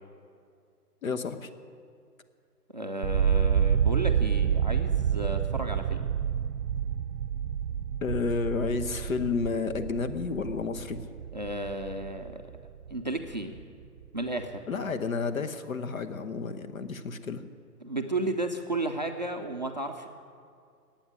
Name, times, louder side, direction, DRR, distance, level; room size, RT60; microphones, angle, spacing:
voice 1, 1.0-1.5 8.0-11.0 14.7-17.4, left 4 dB, 55° left, 10 dB, 1.2 m, -31 dB
voice 2, 2.7-6.1 11.3-12.4 12.9-13.5 14.1-14.8 17.8-20.1, right 2 dB, 30° right, 5 dB, 0.5 m, -33 dB
sound 1, 3.0-13.0 13.3-14.0, right 8 dB, 85° right, 0.6 m, -28 dB
15.5 x 8.9 x 9.8 m, 2.3 s
hypercardioid pair, 160°, 47 cm